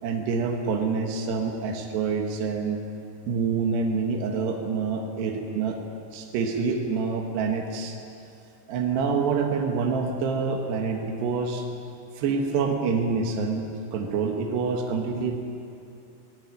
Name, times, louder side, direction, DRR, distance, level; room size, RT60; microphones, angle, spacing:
voice 1, 0.0-2.8 3.3-5.8 6.1-8.0 8.7-11.7 12.2-15.4, right 5 dB, 80° right, 2 dB, 3.6 m, -27 dB
19.5 x 18.0 x 9.8 m, 2.7 s
omnidirectional pair, 4.9 m